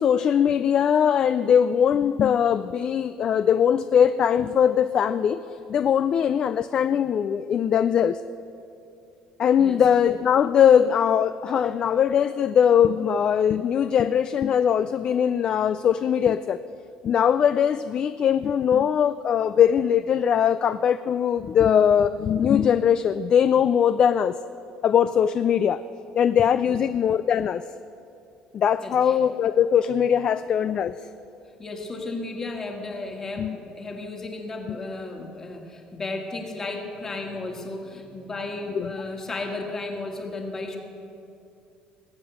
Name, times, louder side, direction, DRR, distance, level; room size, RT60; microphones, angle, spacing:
voice 1, 0.0-5.4 5.7-8.2 9.4-16.6 17.0-24.4 24.8-25.8 26.1-27.6 28.5-31.0 33.4-33.6 38.7-38.9, left 8 dB, 40° left, 13 dB, 0.3 m, -21 dB
voice 2, 9.6-9.9 11.6-11.7 26.7-26.8 28.8-29.2 31.6-40.8, left 2 dB, 20° left, 2 dB, 1.7 m, -34 dB
19.0 x 7.7 x 8.0 m, 2.6 s
cardioid pair, 150°, 2 cm